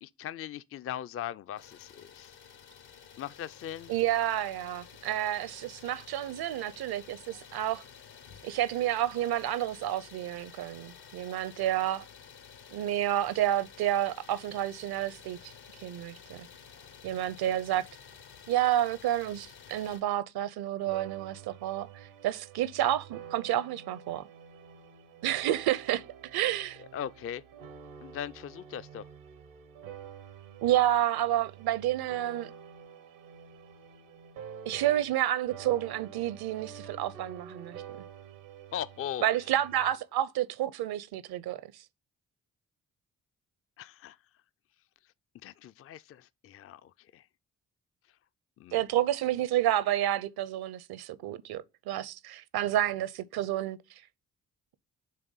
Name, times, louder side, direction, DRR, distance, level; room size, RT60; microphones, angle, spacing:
voice 1, 0.0-2.4 3.2-3.9 26.9-27.4 28.0-29.1 38.7-39.3 43.8-44.2 45.4-47.3 48.6-48.8, left 10 dB, 35° left, 0.4 m, -39 dB
Idling, 1.6-20.0, left 7 dB, 75° left, 1.2 m, -52 dB
voice 2, 3.9-7.8 8.4-12.1 12.7-15.5 15.8-16.5 17.0-17.8 18.5-24.3 25.2-26.0 26.3-26.8 30.6-32.5 34.7-38.1 39.2-41.8 48.7-53.8, right 12 dB, 65° right, 0.7 m, -30 dB
sound 1, 20.8-35.2 35.5-39.9, right 8 dB, 90° right, 1.0 m, -48 dB
6.6 x 3.5 x 5.4 m
hypercardioid pair, 40°, 40 cm